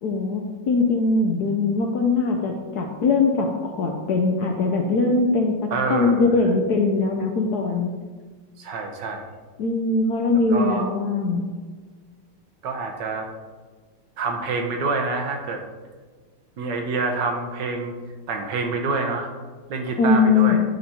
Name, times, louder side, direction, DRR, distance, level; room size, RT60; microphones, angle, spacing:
voice 1, 0.0-5.6 5.9-7.9 9.6-11.5 20.0-20.6, left 3 dB, 70° left, 2 dB, 1.0 m, -21 dB
voice 2, 5.7-6.3 8.6-9.2 10.5-10.9 12.6-13.3 14.2-15.6 16.6-17.9 18.3-19.3 19.7-20.6, right 3 dB, 65° right, 3 dB, 1.3 m, -26 dB
10.0 x 4.2 x 4.2 m, 1.4 s
omnidirectional pair, 2.3 m